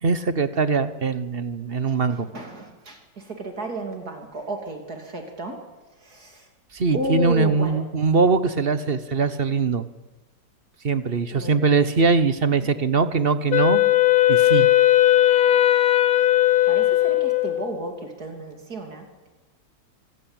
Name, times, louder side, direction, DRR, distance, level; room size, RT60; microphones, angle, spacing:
voice 1, 0.0-2.3 6.7-9.9 10.8-13.8 14.3-14.7, right 4 dB, 40° right, 13 dB, 1.1 m, -21 dB
voice 2, 1.8-5.6 6.0-6.5 6.9-7.7 11.3-11.5 16.7-19.3, right 2 dB, 55° right, 4 dB, 3.4 m, -33 dB
Wind instrument woodwind instrument, 13.5-17.8, left 14 dB, 60° left, 1.3 m, -18 dB
25.0 x 16.5 x 8.8 m, 1.2 s
omnidirectional pair, 1.9 m